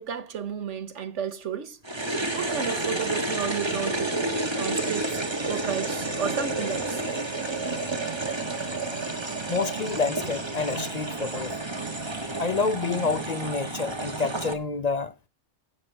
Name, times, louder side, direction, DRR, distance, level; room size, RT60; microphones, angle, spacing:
voice 1, 0.0-1.8 2.3-4.2 4.5-7.0, right 7 dB, 90° right, 1.5 m, -32 dB
sound 1, 1.8-14.5, right 2 dB, 25° right, 1.5 m, -30 dB
voice 2, 9.5-11.5 12.4-15.1, left 4 dB, 40° left, 0.7 m, -28 dB
17.0 x 7.4 x 4.6 m
omnidirectional pair, 1.2 m